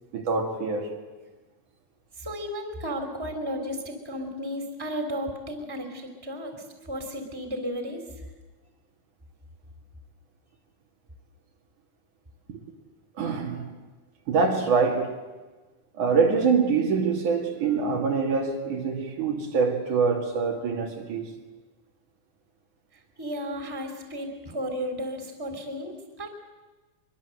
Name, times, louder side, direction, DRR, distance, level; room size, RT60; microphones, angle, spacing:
voice 1, 0.1-1.0 12.5-12.6 13.2-13.8 14.3-15.3 15.9-21.3, right 5 dB, 75° right, 3.9 m, -25 dB
voice 2, 2.2-8.0 23.2-26.3, equal, 5° right, 3.0 m, -34 dB
24.0 x 23.0 x 7.9 m
omnidirectional pair, 3.6 m